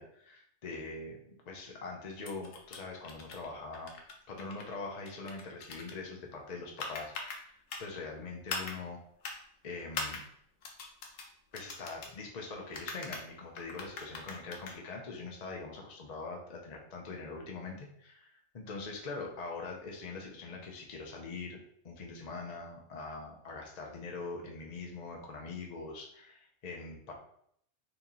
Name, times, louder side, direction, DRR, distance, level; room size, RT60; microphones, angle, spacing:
voice 1, 0.0-3.9 4.3-9.0 9.6-10.2 11.5-21.6 21.8-27.1, left 3 dB, 45° left, 1 dB, 0.6 m, -43 dB
sound 1, 2.3-2.8 3.0-3.5 3.7-4.7 5.1-5.9 6.8-7.4 7.7-7.9 8.5-8.8 9.2-9.4 9.9-10.2 10.6-11.3 11.5-12.1 12.7-13.2 13.6-14.7, left 4 dB, 70° left, 0.9 m, -41 dB
3.0 x 2.8 x 3.7 m, 0.69 s
omnidirectional pair, 1.3 m